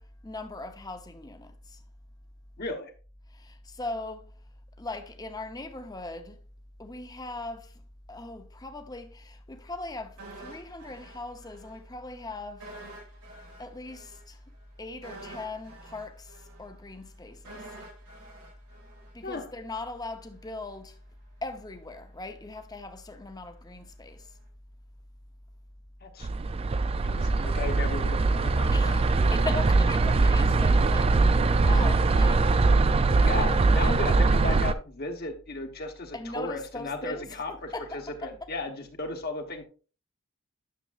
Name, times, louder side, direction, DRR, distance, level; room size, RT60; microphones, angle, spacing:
voice 1, 0.0-1.8 3.3-4.4 4.8-6.4 6.8-7.8 8.1-12.7 13.6-14.4 14.8-17.7 19.1-21.0 21.4-24.3 28.7-32.5 36.1-38.3, left 2 dB, 15° left, 0.7 m, -39 dB
voice 2, 2.6-2.9 19.2-19.5 26.0-26.3 27.0-29.0 33.2-39.6, left 2 dB, 45° left, 1.2 m, -35 dB
sound 1, 10.2-11.8 12.1-12.2 12.6-19.7 20.0-20.1, right 2 dB, 85° right, 2.1 m, -48 dB
sound 2, 26.2-34.7, right 3 dB, 25° right, 0.3 m, -22 dB
10.0 x 6.8 x 2.5 m
head